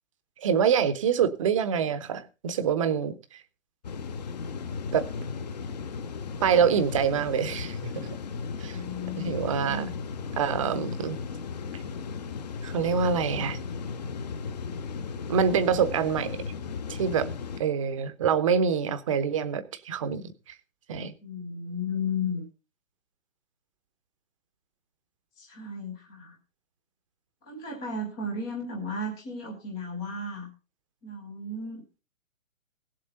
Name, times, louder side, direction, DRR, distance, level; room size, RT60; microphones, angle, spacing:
voice 1, 0.4-3.4 4.9-5.1 6.4-8.1 8.6-8.8 9.2-9.9 10.4-11.2 12.6-13.6 15.3-16.4 16.9-17.3 17.6-20.5 20.9-21.1, right 7 dB, 25° right, 12 dB, 0.8 m, -26 dB
sound 1, 3.8-17.6, left 5 dB, 30° left, 0.8 m, -36 dB
voice 2, 8.6-9.9 21.2-22.5 25.4-26.4 27.4-30.5 31.0-32.0, left 3 dB, 5° left, 0 dB, 0.5 m, -34 dB
17.0 x 7.6 x 4.1 m, 0.31 s
figure-of-eight pair, 135°, 40 cm